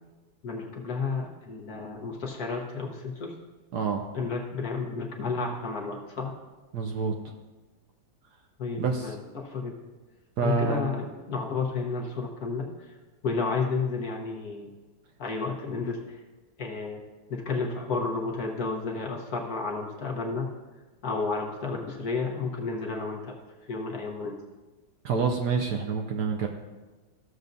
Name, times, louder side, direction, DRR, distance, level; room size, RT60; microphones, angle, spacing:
voice 1, 0.4-3.3 4.1-6.4 8.6-9.7 10.4-12.7 13.2-14.7 15.2-16.2 16.6-17.0 17.4-20.5 21.0-23.3 23.7-24.4, left 4 dB, 55° left, -1 dB, 1.4 m, -31 dB
voice 2, 3.7-4.0 6.7-7.1 8.8-9.2 10.4-10.9 25.0-26.5, right 5 dB, 70° right, 3 dB, 1.1 m, -27 dB
14.5 x 6.9 x 2.6 m, 1.2 s
omnidirectional pair, 2.2 m